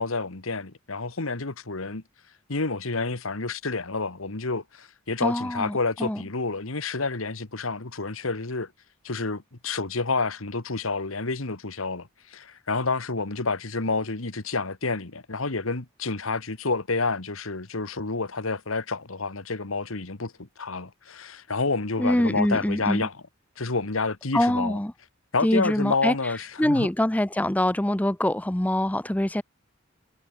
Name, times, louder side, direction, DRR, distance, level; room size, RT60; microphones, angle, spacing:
voice 1, 0.0-2.0 2.5-8.7 9.0-20.3 20.6-23.1 23.6-24.8 25.3-26.9, left 3 dB, 80° left, 1.7 m, -29 dB
voice 2, 5.2-6.2 22.0-23.1 24.3-24.9 25.4-26.1 26.6-29.4, left 1 dB, 5° left, 0.6 m, -24 dB
head